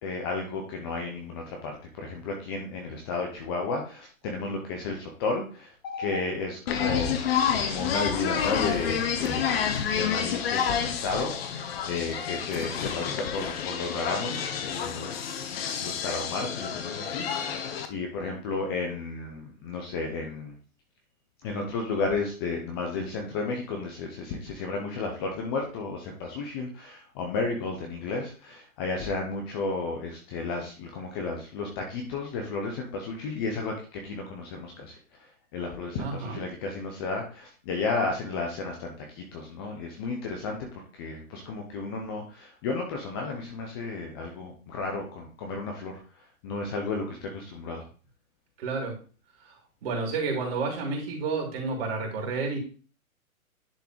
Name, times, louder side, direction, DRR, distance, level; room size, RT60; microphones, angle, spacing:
voice 1, 0.0-7.2 7.6-15.4 15.8-20.5 21.4-35.0 35.5-40.7 40.9-46.0 46.4-47.8, left 3 dB, 20° left, 2 dB, 0.6 m, -33 dB
sound 1, 6.7-17.9, left 8 dB, 45° left, 0.9 m, -29 dB
voice 2, 36.0-36.4 48.6-48.9 49.4-49.5 49.8-52.6, right 4 dB, 45° right, 0 dB, 2.9 m, -30 dB
10.5 x 3.7 x 3.0 m, 0.38 s
hypercardioid pair, 140°, 43 cm